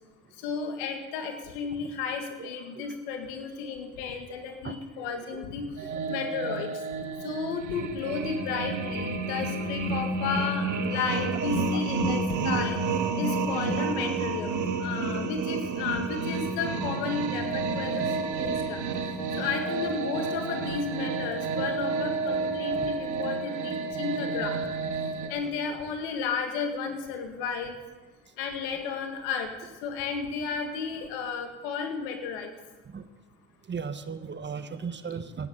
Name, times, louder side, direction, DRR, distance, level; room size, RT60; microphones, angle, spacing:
voice 1, 0.4-5.7 6.1-6.7 7.2-12.8 13.2-18.8 19.4-24.7 25.3-27.7 28.4-29.5 29.8-32.5, left 5 dB, 90° left, 5 dB, 2.1 m, -33 dB
voice 2, 2.4-3.0 4.6-5.5 5.8-6.2 7.4-7.5 8.0-8.1 9.6-9.7 10.0-10.1 11.3-11.9 13.5-13.8 24.2-24.3 25.2-25.8 32.9-33.0 33.7-35.5, right 5 dB, 35° right, 10 dB, 1.4 m, -39 dB
sound 1, 5.8-25.3, right 3 dB, 65° right, 1.9 m, -30 dB
14.0 x 10.0 x 7.8 m, 1.2 s
supercardioid pair, 65°, 32 cm